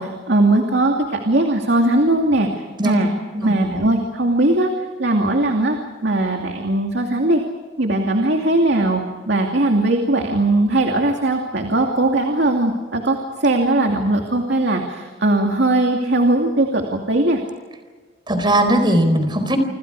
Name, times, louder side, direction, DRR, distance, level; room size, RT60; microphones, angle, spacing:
voice 1, 0.0-3.1 3.4-4.7 5.0-7.4 7.8-9.0 9.3-17.4, right 2 dB, 65° right, 3 dB, 2.6 m, -19 dB
voice 2, 18.3-19.6, right 1 dB, 25° right, 8 dB, 4.3 m, -18 dB
27.5 x 27.0 x 4.9 m, 1.4 s
head